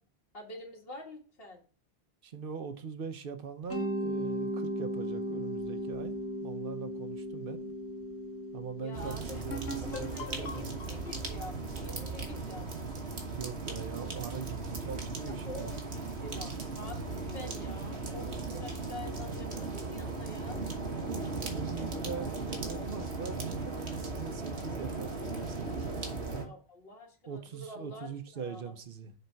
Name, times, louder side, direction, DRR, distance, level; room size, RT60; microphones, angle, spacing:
voice 1, 0.3-1.6 8.8-9.4 9.7-11.5 11.8-12.7 15.3-20.6 26.4-28.1 28.3-28.8, left 1 dB, 65° left, 1.9 m, -46 dB
voice 2, 2.2-6.1 6.4-7.7 8.5-10.9 13.2-15.7 21.3-26.5 27.3-29.1, right 6 dB, 60° right, 1.0 m, -42 dB
Mallet percussion, 3.7-12.5, equal, 15° left, 1.2 m, -38 dB
sound 1, 8.9-26.4, right 3 dB, 90° right, 1.6 m, -37 dB
sound 2, 9.5-13.1, right 1 dB, 90° left, 1.3 m, -43 dB
6.8 x 4.5 x 4.5 m
omnidirectional pair, 1.1 m